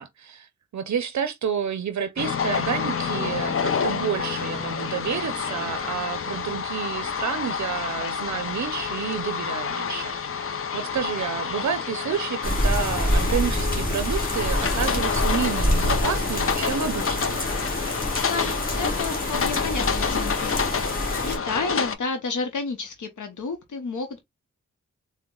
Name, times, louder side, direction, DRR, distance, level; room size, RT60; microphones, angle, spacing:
voice 1, 0.0-17.4, right 8 dB, 70° right, 0.5 m, -30 dB
sound 1, 2.2-22.0, left 6 dB, 50° left, 0.5 m, -28 dB
sound 2, 12.4-21.4, equal, 30° left, 1.5 m, -26 dB
voice 2, 18.2-20.6 21.2-24.2, left 4 dB, 80° left, 0.7 m, -31 dB
3.9 x 2.1 x 3.6 m
wide cardioid pair, 105°, 30 cm